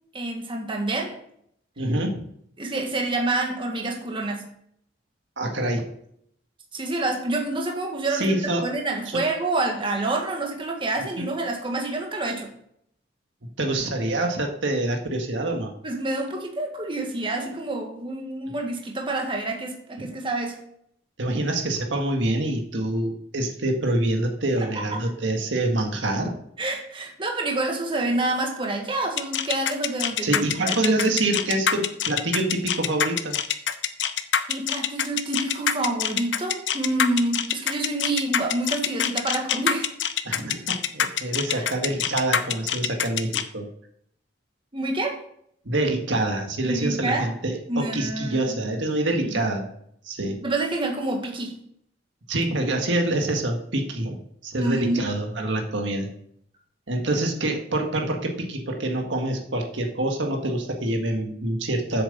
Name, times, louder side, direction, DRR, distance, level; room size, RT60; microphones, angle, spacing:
voice 1, 0.1-1.2 2.6-4.4 6.7-12.5 15.8-20.6 24.7-25.0 26.6-30.8 34.5-39.9 41.5-41.7 44.7-45.2 46.6-47.3 47.7-48.6 49.2-49.4 50.4-51.6 54.6-55.1, right 2 dB, 30° right, 1 dB, 1.7 m, -28 dB
voice 2, 1.8-2.2 5.4-5.8 8.1-8.7 9.1-9.2 11.2-11.3 13.6-15.7 20.0-20.1 21.2-26.3 30.2-33.4 40.2-43.7 45.6-49.7 50.0-50.4 52.3-56.1 56.9-62.0, right 1 dB, 80° right, 3 dB, 1.7 m, -26 dB
sound 1, 29.2-43.4, left 9 dB, 75° left, 0.7 m, -25 dB
8.0 x 7.1 x 6.8 m, 0.70 s
head